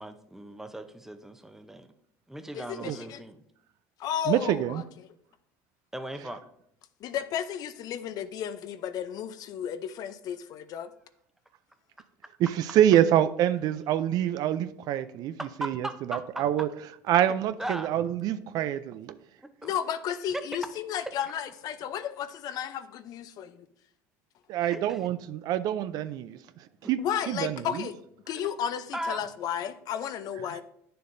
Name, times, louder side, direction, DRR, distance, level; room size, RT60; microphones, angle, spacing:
voice 1, 0.0-1.9 2.3-3.4 5.9-6.4 15.4-16.4 17.6-17.9 19.4-19.7 24.6-25.1 26.8-26.9 28.3-28.5 28.9-29.2, right 1 dB, 5° right, 0.7 m, -38 dB
voice 2, 2.5-3.2 4.0-4.8 7.0-10.9 19.6-23.7 27.0-27.9 28.3-30.6, left 9 dB, 55° left, 0.5 m, -33 dB
voice 3, 4.3-4.8 12.4-16.7 17.1-19.2 24.5-26.4 26.9-27.9, right 11 dB, 60° right, 0.4 m, -26 dB
9.2 x 6.7 x 2.6 m
supercardioid pair, 95°, 8 cm